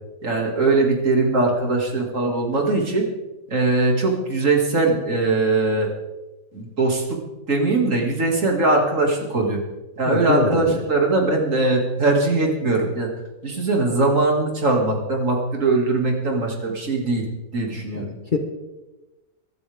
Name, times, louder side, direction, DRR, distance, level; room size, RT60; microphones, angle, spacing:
voice 1, 0.2-3.1 3.5-5.9 6.5-7.2 7.5-9.6 10.0-13.1 13.4-18.0, right 3 dB, 55° right, 0 dB, 2.8 m, -21 dB
voice 2, 10.0-10.8 17.9-18.0 18.3-18.4, left 3 dB, 35° left, 4 dB, 1.2 m, -23 dB
23.5 x 12.0 x 3.6 m, 1.1 s
omnidirectional pair, 1.6 m